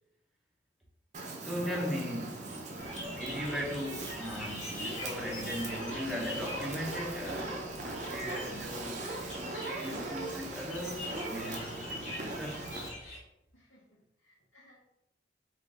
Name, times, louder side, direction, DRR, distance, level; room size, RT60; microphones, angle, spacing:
Fire, 1.1-12.9, right 2 dB, 40° right, 0.5 m, -40 dB
voice 1, 1.4-12.6, equal, ahead, 0.7 m, -38 dB
sound 1, 2.8-13.2, left 1 dB, 35° left, 1.4 m, -44 dB
voice 2, 13.5-14.8, left 1 dB, 80° left, 0.9 m, -63 dB
3.7 x 2.5 x 3.6 m
head